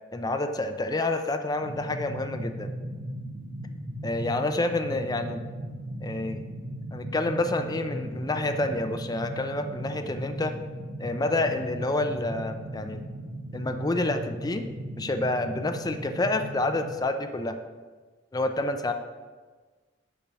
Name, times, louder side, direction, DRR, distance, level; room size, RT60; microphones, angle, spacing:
voice 1, 0.1-2.7 4.0-5.4 6.0-6.4 6.9-10.5 11.0-13.0 13.5-14.6 15.0-17.6 18.3-18.9, left 2 dB, 20° left, 7 dB, 0.5 m, -28 dB
sound 1, 1.6-17.0, right 1 dB, 75° right, 0.9 m, -37 dB
7.0 x 5.4 x 4.7 m, 1.4 s
head